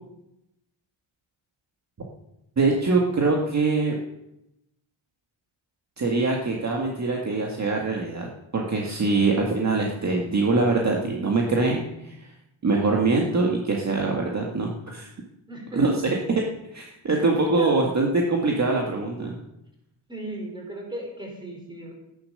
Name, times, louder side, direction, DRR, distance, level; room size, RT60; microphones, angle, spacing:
voice 1, 2.6-4.0 6.0-8.3 8.5-12.3 12.6-15.1 15.7-16.4 16.7-19.4, right 3 dB, 35° right, 0 dB, 1.8 m, -23 dB
voice 2, 15.5-15.9 17.6-17.7 20.1-21.9, right 1 dB, 10° right, 1 dB, 4.1 m, -36 dB
14.0 x 10.5 x 6.6 m, 0.85 s
wide cardioid pair, 170°, 48 cm